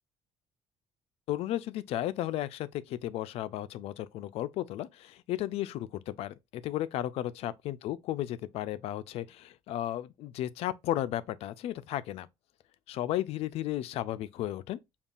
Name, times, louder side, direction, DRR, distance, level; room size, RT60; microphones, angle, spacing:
voice 1, 1.3-12.3 12.9-15.0, left 13 dB, 70° left, 0.4 m, -34 dB
5.2 x 2.4 x 2.4 m
cardioid pair, 125°, 11 cm